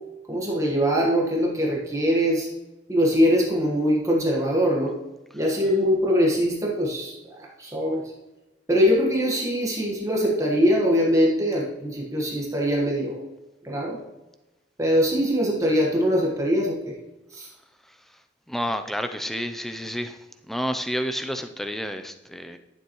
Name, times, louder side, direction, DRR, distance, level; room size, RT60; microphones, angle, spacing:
voice 1, 0.3-2.5 2.9-4.9 5.3-8.0 8.7-13.2 13.6-14.0 14.8-16.9 17.3-17.5, equal, 15° right, -3 dB, 1.3 m, -22 dB
voice 2, 18.5-20.2 20.5-22.6, equal, ahead, 8 dB, 0.4 m, -30 dB
11.5 x 7.1 x 3.0 m, 1.0 s
head